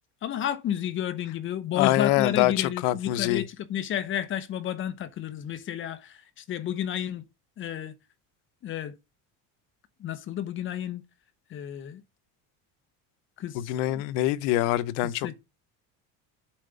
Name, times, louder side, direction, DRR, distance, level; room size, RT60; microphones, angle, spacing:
voice 1, 0.2-7.2 7.6-7.9 8.6-9.0 10.0-11.0 11.5-12.0 13.4-14.0 15.0-15.4, left 10 dB, 30° left, 1.0 m, -31 dB
voice 2, 1.7-3.4 13.5-15.4, left 15 dB, 80° left, 0.9 m, -25 dB
7.5 x 4.9 x 6.8 m
cardioid pair, 165°, 38 cm